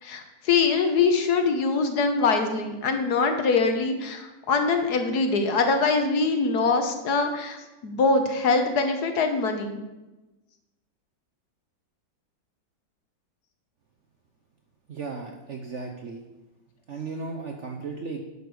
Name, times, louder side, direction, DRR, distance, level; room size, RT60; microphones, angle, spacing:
voice 1, 0.0-7.6 7.8-9.8, left 4 dB, 60° left, 6 dB, 1.4 m, -23 dB
voice 2, 14.9-16.2 16.9-18.2, right 4 dB, 55° right, 3 dB, 0.8 m, -35 dB
10.0 x 6.6 x 4.7 m, 1.1 s
omnidirectional pair, 2.0 m